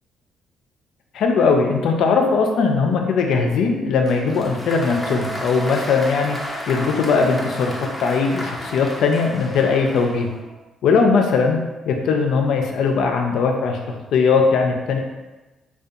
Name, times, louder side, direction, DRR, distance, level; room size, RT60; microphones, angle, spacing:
voice 1, 1.1-6.4 6.7-7.7 8.0-10.3 10.8-11.6 11.9-15.0, left 4 dB, 80° left, 3 dB, 0.3 m, -19 dB
Applause, 4.1-10.4, left 1 dB, 10° left, 0.5 m, -33 dB
sound 1, 4.7-10.6, right 2 dB, 35° right, 0.6 m, -37 dB
2.7 x 2.1 x 2.3 m, 1.1 s
cardioid pair, 90°, 0 cm